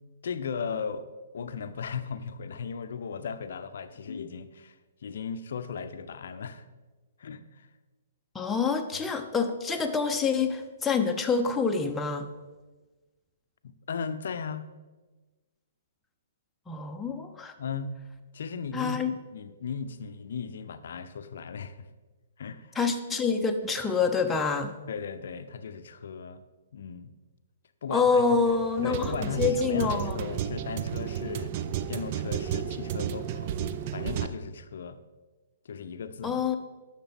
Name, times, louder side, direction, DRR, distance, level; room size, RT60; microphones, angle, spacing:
voice 1, 0.2-1.1 1.3-4.7 5.0-6.6 7.2-7.7 8.9-9.0 13.6-14.7 17.6-18.0 18.3-19.0 19.3-21.8 22.4-22.8 24.9-26.4 26.7-27.1 27.8-28.6 28.8-31.5 31.9-33.5 33.9-35.0 35.7-36.4, left 6 dB, 65° left, 10 dB, 0.6 m, -36 dB
voice 2, 8.3-12.3 16.7-17.5 18.7-19.1 22.7-24.8 27.9-30.2 36.2-36.6, left 5 dB, 10° left, 4 dB, 0.7 m, -27 dB
sound 1, 28.1-34.3, right 9 dB, 40° right, 0.4 m, -33 dB
10.0 x 6.5 x 3.6 m, 1.2 s
figure-of-eight pair, 125°, 0 cm